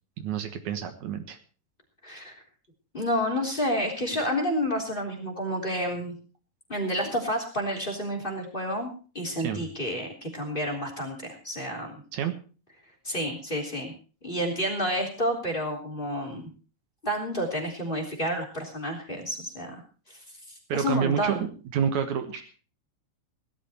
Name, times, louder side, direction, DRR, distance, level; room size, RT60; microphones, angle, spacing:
voice 1, 0.2-1.4 9.4-9.6 12.1-12.4 20.7-21.4 21.7-22.5, right 8 dB, 75° right, 8 dB, 2.7 m, -28 dB
voice 2, 2.0-2.4 2.9-6.1 6.7-12.0 13.0-13.9 14.2-16.4 17.0-19.8 20.1-20.2 20.5-21.4, equal, 15° left, 2 dB, 3.4 m, -30 dB
17.0 x 12.5 x 4.4 m, 0.38 s
omnidirectional pair, 3.4 m